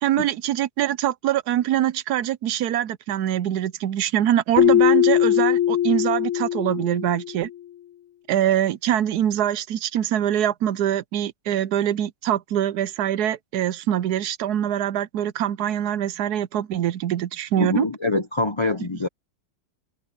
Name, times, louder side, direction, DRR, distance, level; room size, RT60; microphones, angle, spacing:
voice 1, 0.0-7.5 8.3-17.9, right 11 dB, 70° right, 1.1 m, -24 dB
Keyboard (musical), 4.6-7.4, left 11 dB, 70° left, 0.7 m, -20 dB
voice 2, 17.6-19.1, left 2 dB, 50° left, 0.3 m, -24 dB
omnidirectional pair, 1.8 m